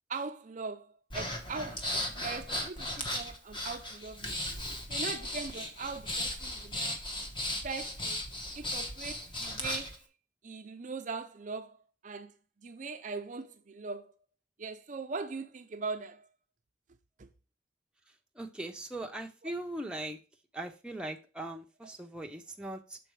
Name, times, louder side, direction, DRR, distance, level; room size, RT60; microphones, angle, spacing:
voice 1, 0.1-0.9 1.1-4.4 4.9-7.0 7.6-8.2 8.5-9.9 10.4-11.8 12.0-12.3 12.6-14.1 14.6-16.3 17.2-17.3, right 4 dB, 40° right, 0.5 m, -40 dB
Breathing, 1.1-10.0, left 1 dB, 25° left, 1.1 m, -36 dB
voice 2, 18.4-20.2 20.5-23.0, right 1 dB, 5° right, 0.7 m, -40 dB
6.8 x 4.0 x 4.7 m
head